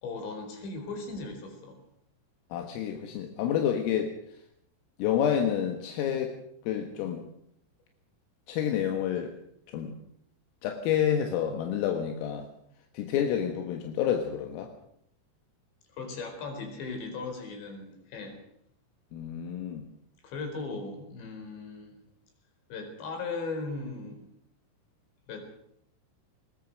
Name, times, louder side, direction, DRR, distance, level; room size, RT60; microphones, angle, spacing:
voice 1, 0.0-1.8 15.9-18.4 20.2-21.9 22.7-24.3 25.3-25.5, left 3 dB, 60° left, 5 dB, 6.4 m, -38 dB
voice 2, 2.5-4.2 5.0-6.4 6.6-7.3 8.5-9.3 9.7-10.0 10.6-12.5 12.9-14.7 19.1-19.9, left 9 dB, 80° left, 5 dB, 4.2 m, -29 dB
21.5 x 20.5 x 6.5 m, 0.71 s
omnidirectional pair, 5.9 m